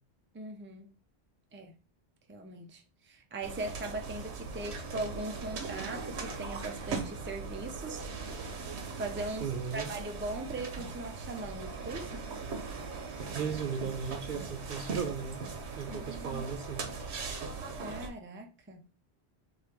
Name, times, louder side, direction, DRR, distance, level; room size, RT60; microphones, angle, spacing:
voice 1, 0.3-0.9 1.5-1.7 2.3-8.0 9.0-12.3 15.9-16.5 17.8-18.9, right 2 dB, 15° right, 0.5 m, -40 dB
sound 1, 3.4-18.1, right 4 dB, 80° right, 1.1 m, -40 dB
voice 2, 9.4-9.9 13.3-16.9, right 6 dB, 60° right, 0.7 m, -36 dB
4.5 x 2.9 x 3.4 m
omnidirectional pair, 1.1 m